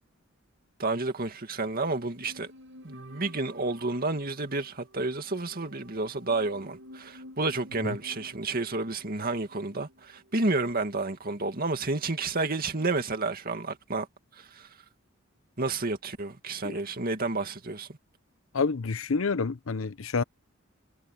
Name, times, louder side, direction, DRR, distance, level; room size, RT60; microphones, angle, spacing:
voice 1, 0.8-2.5 2.8-14.1 14.4-14.7 15.6-17.9, right 3 dB, 45° right, 2.2 m, -30 dB
sound 1, 1.8-11.2 11.4-11.5, equal, 65° right, 7.9 m, -52 dB
voice 2, 18.5-20.2, left 4 dB, 75° left, 0.7 m, -28 dB
head